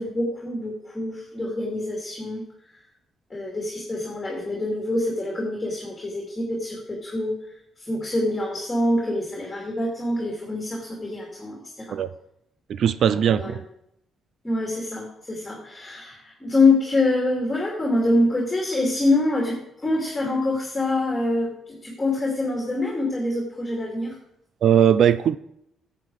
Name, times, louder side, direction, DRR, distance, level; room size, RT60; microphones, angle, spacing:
voice 1, 0.0-2.4 3.3-7.3 7.8-12.0 13.3-13.6 14.4-24.2, left 2 dB, 20° left, 2.9 m, -25 dB
voice 2, 12.7-13.6 24.6-25.4, right 9 dB, 65° right, 0.5 m, -19 dB
10.5 x 7.6 x 4.9 m
cardioid pair, 90°, 0 cm